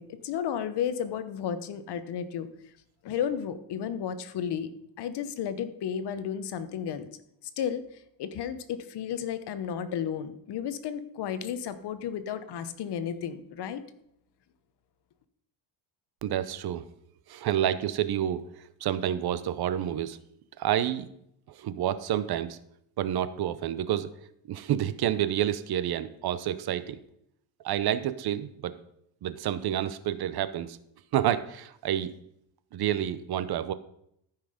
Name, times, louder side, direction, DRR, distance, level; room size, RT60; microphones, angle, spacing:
voice 1, 0.0-2.5 3.0-4.7 5.0-7.1 7.6-7.8 8.2-13.8, left 8 dB, 55° left, 12 dB, 1.0 m, -33 dB
voice 2, 16.2-16.8 17.3-20.2 20.6-21.1 21.5-22.6 23.0-24.1 24.5-27.0 27.6-28.7 29.2-30.8 31.1-32.1 32.7-33.7, right 11 dB, 50° right, 14 dB, 0.7 m, -29 dB
13.5 x 5.7 x 5.1 m, 0.73 s
cardioid pair, 135°, 47 cm